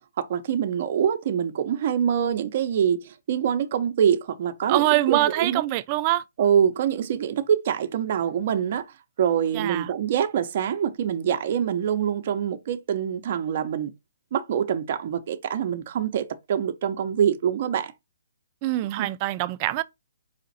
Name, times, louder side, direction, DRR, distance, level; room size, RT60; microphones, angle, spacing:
voice 1, 0.2-5.6 6.4-13.9 14.3-17.9 18.9-19.1, right 8 dB, 40° right, 0.8 m, -25 dB
voice 2, 4.7-6.2 9.5-9.9 18.6-19.8, right 16 dB, 25° right, 0.4 m, -24 dB
5.0 x 2.5 x 4.0 m
hypercardioid pair, 160°, 0 cm